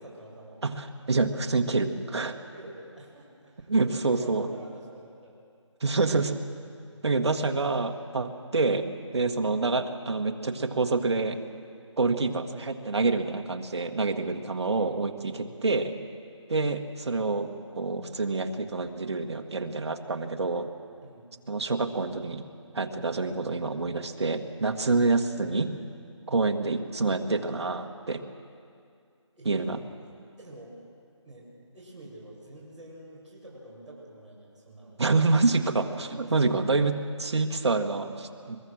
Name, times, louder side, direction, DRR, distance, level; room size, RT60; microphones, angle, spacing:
voice 1, 0.0-0.6 2.2-5.3 6.9-7.1 15.5-15.6 21.0-21.3 26.3-26.5 29.4-29.7 30.0-30.8 31.2-35.0 36.2-36.6, right 1 dB, 5° right, -15 dB, 4.3 m, -47 dB
voice 2, 0.6-2.4 3.7-4.5 5.8-6.3 7.0-8.9 9.1-11.4 12.0-15.9 16.5-20.7 21.5-22.4 22.7-25.7 26.3-28.2 29.4-29.8 35.0-38.6, right 3 dB, 60° right, 5 dB, 1.7 m, -27 dB
22.5 x 22.0 x 6.4 m, 2.3 s
figure-of-eight pair, 175°, 16 cm